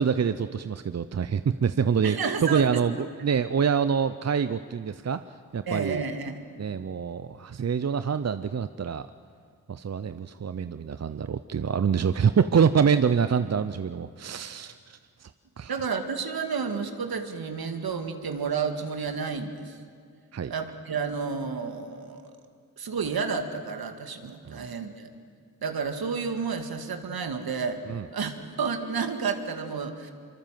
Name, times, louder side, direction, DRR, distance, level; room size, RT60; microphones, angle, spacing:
voice 1, 0.0-2.2 2.4-5.2 5.5-6.0 6.6-9.1 9.7-15.3 15.6-15.7 20.3-20.5 24.5-24.7 27.9-28.0, right 7 dB, 40° right, 12 dB, 0.7 m, -26 dB
voice 2, 2.0-2.8 5.7-6.4 15.7-19.8 20.5-22.3 22.8-25.1 25.6-30.1, right 5 dB, 70° right, 7 dB, 2.2 m, -31 dB
24.5 x 24.0 x 7.6 m, 2.1 s
supercardioid pair, 45°, 38 cm